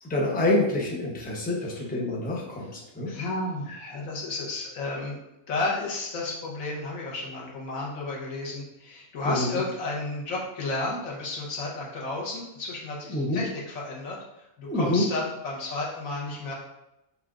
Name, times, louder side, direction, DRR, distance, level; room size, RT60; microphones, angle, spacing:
voice 1, 0.0-3.1 9.2-9.6 13.1-13.4 14.6-15.1, left 2 dB, 10° left, -3 dB, 0.7 m, -27 dB
voice 2, 3.1-5.2 5.5-16.5, left 2 dB, 90° left, -4 dB, 1.5 m, -32 dB
5.6 x 3.5 x 2.5 m, 0.90 s
omnidirectional pair, 1.4 m